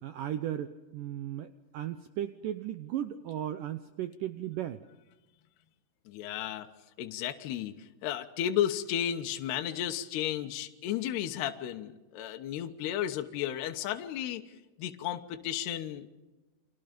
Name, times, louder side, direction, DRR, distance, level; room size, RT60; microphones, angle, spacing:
voice 1, 0.0-4.9, right 11 dB, 85° right, 10 dB, 1.9 m, -36 dB
voice 2, 6.1-6.7 7.0-7.7 8.0-14.5 14.8-16.1, left 11 dB, 75° left, 6 dB, 3.1 m, -33 dB
29.5 x 25.0 x 5.2 m, 1.1 s
omnidirectional pair, 5.1 m